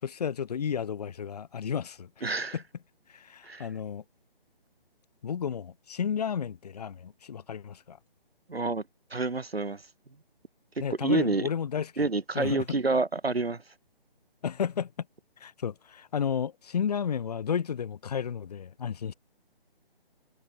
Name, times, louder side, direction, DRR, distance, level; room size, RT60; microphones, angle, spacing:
voice 1, 0.0-2.1 2.5-2.6 3.1-4.0 5.2-8.0 10.8-12.1 12.3-12.8 14.4-15.1 15.4-19.1, left 7 dB, 40° left, 4.2 m, -32 dB
voice 2, 2.2-2.6 3.4-3.7 8.5-8.8 9.1-9.8 11.0-11.5 12.0-13.6, right 3 dB, 85° right, 2.8 m, -28 dB
figure-of-eight pair, 155°, 30 cm